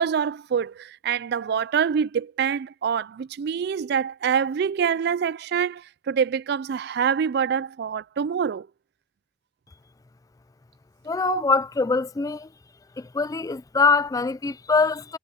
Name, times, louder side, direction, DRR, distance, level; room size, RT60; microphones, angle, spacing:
voice 1, 0.0-8.7 11.2-11.4, right 7 dB, 60° right, 0.3 m, -25 dB
voice 2, 11.0-12.5 13.0-15.2, left 4 dB, 20° left, 0.3 m, -23 dB
head